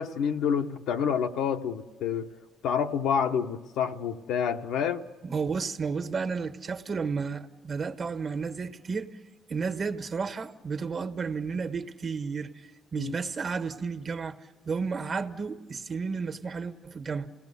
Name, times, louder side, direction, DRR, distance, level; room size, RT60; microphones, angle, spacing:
voice 1, 0.0-2.3 2.6-5.0 13.0-13.1, left 7 dB, 90° left, 1.0 m, -28 dB
voice 2, 5.2-9.1 9.5-14.4 14.6-17.3, right 5 dB, 50° right, 1.5 m, -32 dB
28.5 x 18.0 x 7.0 m
cardioid pair, 90°, 0 cm